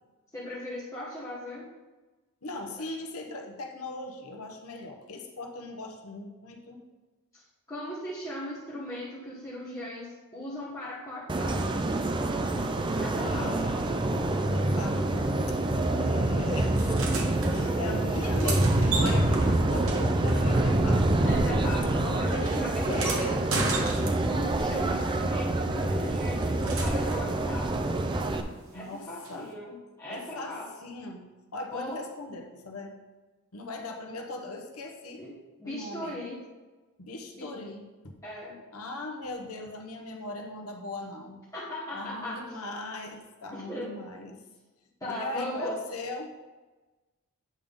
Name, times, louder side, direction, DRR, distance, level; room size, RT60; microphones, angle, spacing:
voice 1, 0.3-1.7 7.3-7.4 7.7-11.6 13.0-13.8 17.5-17.9 21.2-23.3 24.2-27.7 28.7-30.7 31.7-32.0 35.2-35.3 35.6-36.4 37.3-37.5 38.2-38.6 41.5-42.6 43.5-43.9 45.0-45.8, left 1 dB, 15° left, -9 dB, 1.3 m, -38 dB
voice 2, 2.4-6.8 13.1-14.1 14.5-15.6 15.9-17.0 17.5-21.3 22.1-23.4 24.5-25.6 28.7-29.5 30.1-31.2 31.5-32.9 33.5-35.2 35.6-36.2 37.0-38.1 38.7-41.4 41.9-44.4 45.0-46.3, left 2 dB, 75° left, 3 dB, 0.9 m, -39 dB
sound 1, 11.3-28.4, right 2 dB, 20° right, 0.4 m, -26 dB
sound 2, 16.8-17.5 18.1-21.1 21.4-24.5 26.0-27.3 29.2-29.3, right 3 dB, 60° right, 1.1 m, -35 dB
8.7 x 3.7 x 5.2 m, 1.2 s
head